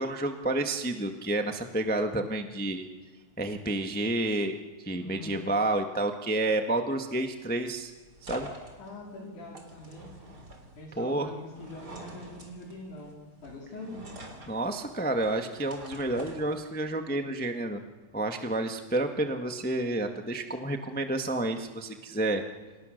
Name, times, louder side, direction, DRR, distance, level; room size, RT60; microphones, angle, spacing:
voice 1, 0.0-2.9 3.4-4.6 4.8-7.9 8.2-8.5 11.0-11.3 14.5-17.8 18.1-22.4, right 2 dB, 10° left, 5 dB, 0.5 m, -30 dB
voice 2, 5.0-5.4 8.8-10.1 10.8-13.2 13.4-14.0, left 2 dB, 80° left, -3 dB, 5.6 m, -43 dB
sound 1, 7.2-17.0, right 1 dB, 30° right, 4.0 m, -47 dB
29.0 x 28.5 x 6.7 m, 1.3 s
omnidirectional pair, 3.4 m